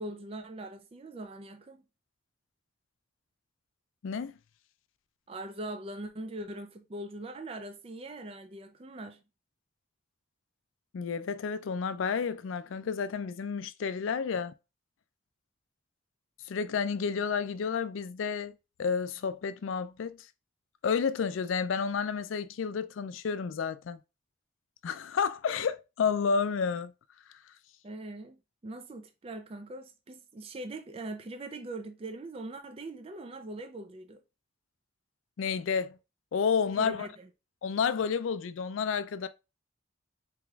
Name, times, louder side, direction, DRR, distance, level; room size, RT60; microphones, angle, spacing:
voice 1, 0.0-1.8 5.3-9.2 27.8-28.4 28.6-34.2 36.8-37.3, right 2 dB, 30° right, 0.4 m, -41 dB
voice 2, 10.9-14.5 16.5-18.5 18.8-20.2 20.8-24.0 24.8-26.9 35.4-36.0 36.3-37.1 37.6-39.3, left 6 dB, 85° left, 0.4 m, -30 dB
4.7 x 3.0 x 2.3 m
head